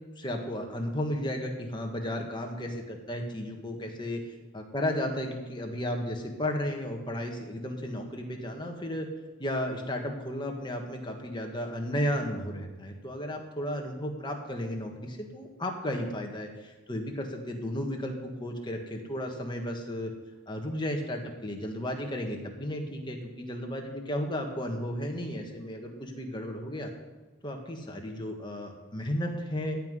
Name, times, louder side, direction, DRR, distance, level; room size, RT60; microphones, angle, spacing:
voice 1, 0.2-4.2 4.5-9.1 9.4-20.1 20.5-26.9 27.4-29.8, equal, 20° left, 2 dB, 1.7 m, -34 dB
14.5 x 5.9 x 9.8 m, 1.2 s
head